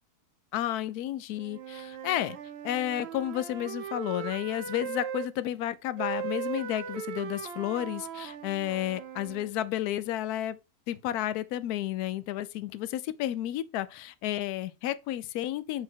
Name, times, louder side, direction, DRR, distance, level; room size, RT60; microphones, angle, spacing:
voice 1, 0.5-2.4 2.6-10.6 10.9-15.8, left 13 dB, 80° left, 1.1 m, -32 dB
Wind instrument woodwind instrument, 1.4-5.3 6.0-9.5, right 8 dB, 65° right, 0.6 m, -38 dB
8.3 x 2.9 x 4.5 m
omnidirectional pair, 1.6 m